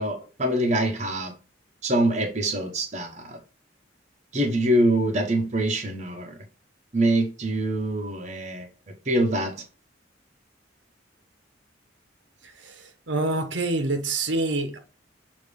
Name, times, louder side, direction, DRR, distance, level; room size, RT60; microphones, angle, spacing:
voice 1, 0.0-1.3 1.8-3.4 4.3-6.4 6.9-8.7 9.1-9.6, right 1 dB, 40° right, 1.0 m, -24 dB
voice 2, 13.1-14.8, right 2 dB, 90° right, 1.2 m, -25 dB
6.6 x 2.9 x 5.3 m
head